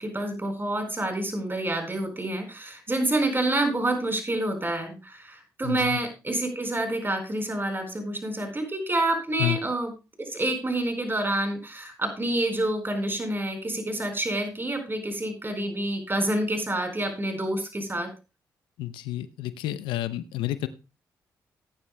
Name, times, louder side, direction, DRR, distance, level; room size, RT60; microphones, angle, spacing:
voice 1, 0.0-9.9 10.2-18.1, right 1 dB, 25° right, 5 dB, 4.5 m, -28 dB
voice 2, 5.6-6.0 9.4-9.6 18.8-20.7, left 14 dB, 85° left, 14 dB, 0.6 m, -30 dB
18.0 x 9.7 x 2.2 m, 0.28 s
supercardioid pair, 45°, 8 cm